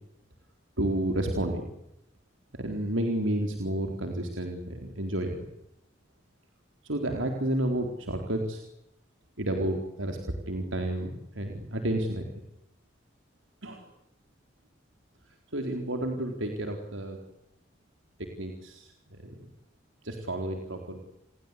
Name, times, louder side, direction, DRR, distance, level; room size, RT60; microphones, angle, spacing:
voice 1, 0.8-1.6 2.6-5.5 6.8-8.6 9.4-10.2 10.5-12.3 13.6-13.8 15.5-17.2 18.4-18.9 19.2-19.3 20.0-21.0, right 1 dB, 85° right, 4 dB, 4.2 m, -31 dB
29.5 x 22.0 x 8.5 m, 0.83 s
head